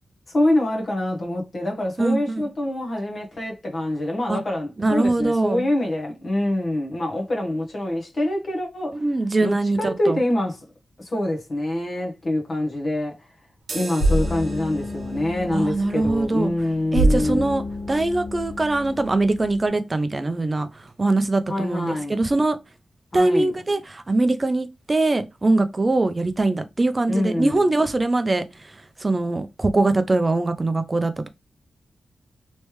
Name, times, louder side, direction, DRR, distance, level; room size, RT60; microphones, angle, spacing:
voice 1, 0.3-9.0 9.4-10.6 11.0-13.2 13.7-17.5 21.5-22.2 23.1-23.5 27.1-27.7, left 1 dB, 45° left, 1.1 m, -25 dB
voice 2, 2.0-2.5 4.3-4.4 4.8-5.7 8.9-10.2 15.5-16.5 16.9-22.6 23.1-28.7 29.0-31.3, right 2 dB, 25° right, 0.4 m, -22 dB
sound 1, 13.6-21.4, right 3 dB, 50° right, 0.9 m, -43 dB
sound 2, 14.0-19.7, right 1 dB, 90° left, 1.3 m, -27 dB
3.2 x 3.1 x 3.1 m
wide cardioid pair, 155°, 0 cm